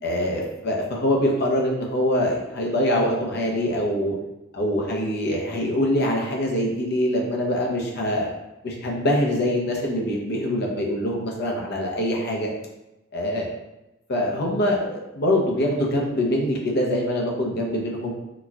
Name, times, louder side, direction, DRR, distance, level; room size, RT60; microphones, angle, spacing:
voice 1, 0.0-4.1 4.5-8.3 8.6-12.5 13.1-13.5 14.1-18.1, left 1 dB, 50° left, -1 dB, 0.6 m, -24 dB
4.0 x 2.2 x 2.3 m, 0.96 s
head